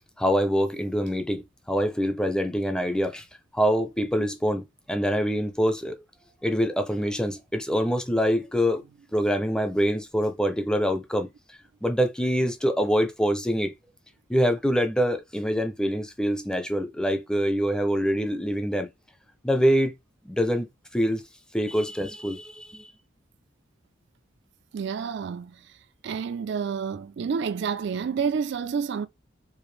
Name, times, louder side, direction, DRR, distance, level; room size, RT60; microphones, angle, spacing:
voice 1, 0.2-3.3 3.5-6.0 6.4-8.8 9.1-11.3 11.8-13.7 14.3-18.9 19.4-19.9 20.2-20.7 20.9-21.2 21.5-22.9, equal, 5° left, 0.5 m, -25 dB
voice 2, 24.7-25.7 26.0-29.1, right 6 dB, 60° right, 0.4 m, -29 dB
4.8 x 2.5 x 3.2 m
head